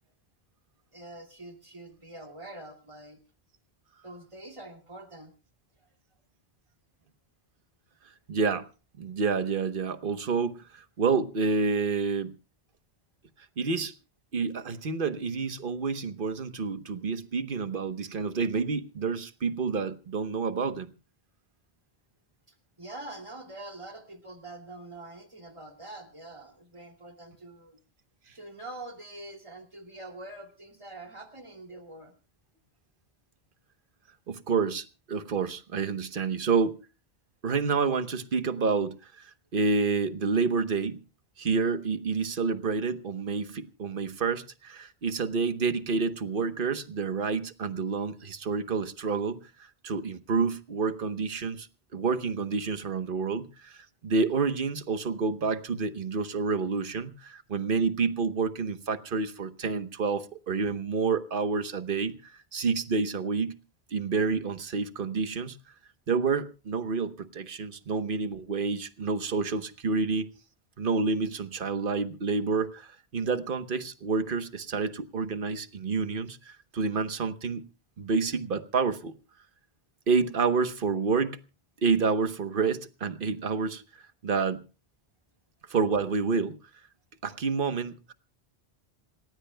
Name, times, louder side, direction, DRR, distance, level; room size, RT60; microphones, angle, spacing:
voice 1, 0.9-3.2 4.0-5.3 5.8-5.9 22.5-27.8 28.3-32.1, right 2 dB, 30° right, 2.7 m, -45 dB
voice 2, 8.3-8.7 9.0-12.3 13.6-13.9 14.3-20.9 34.3-36.8 37.4-41.0 41.4-49.4 49.8-51.7 51.9-63.6 63.9-65.6 66.1-70.3 70.8-77.7 78.0-79.1 80.1-81.4 81.8-83.8 84.2-84.6 85.7-86.6 87.2-88.1, right 4 dB, 60° right, 1.2 m, -29 dB
27.5 x 15.5 x 2.2 m
omnidirectional pair, 1.1 m